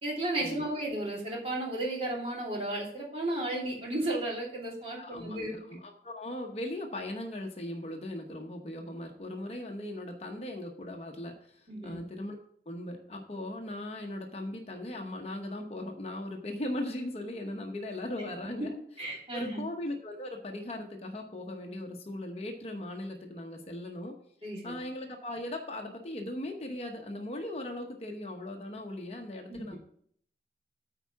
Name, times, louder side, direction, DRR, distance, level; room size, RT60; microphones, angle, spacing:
voice 1, 0.0-5.6 11.7-12.0 19.0-19.7 24.4-24.7 29.5-29.6, right 1 dB, 35° right, -4 dB, 2.9 m, -34 dB
voice 2, 5.0-12.4 12.7-18.7 19.3-24.2 24.6-29.8, left 1 dB, 35° left, 3 dB, 0.9 m, -38 dB
9.1 x 4.6 x 7.1 m, 0.63 s
head